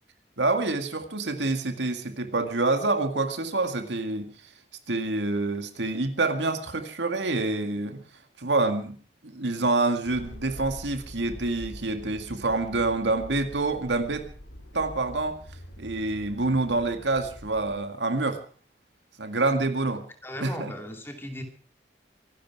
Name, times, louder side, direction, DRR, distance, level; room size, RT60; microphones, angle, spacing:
voice 1, 0.4-4.3 4.9-8.0 8.4-9.0 9.2-14.2 14.7-15.4 15.8-18.4 19.2-20.1 20.4-20.7, right 2 dB, 80° right, 6 dB, 2.1 m, -27 dB
sound 1, 10.0-17.8, equal, 75° left, 3.3 m, -44 dB
voice 2, 20.2-21.4, equal, 15° left, 4 dB, 2.7 m, -37 dB
24.5 x 12.0 x 4.7 m, 0.41 s
head